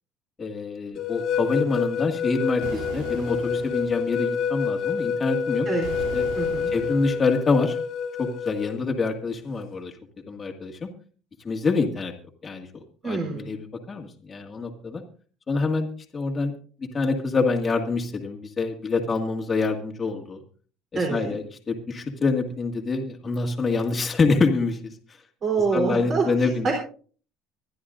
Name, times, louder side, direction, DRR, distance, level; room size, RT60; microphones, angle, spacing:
voice 1, 0.4-5.7 6.1-6.2 6.7-7.8 8.2-10.0 10.3-10.9 11.4-12.1 12.4-12.7 13.0-15.0 15.5-15.9 16.1-16.5 16.8-20.4 20.9-24.9 25.7-26.7, left 4 dB, 20° left, 2 dB, 1.8 m, -26 dB
sound 1, 1.0-8.7, left 6 dB, 50° left, 1.7 m, -28 dB
sound 2, 2.6-4.0 5.8-7.3, right 5 dB, 85° right, 3.1 m, -38 dB
voice 2, 6.3-6.7 13.0-13.5 20.9-21.4 25.4-26.7, right 4 dB, 35° right, 0 dB, 3.4 m, -26 dB
24.5 x 11.0 x 2.5 m, 0.40 s
cardioid pair, 140°, 0 cm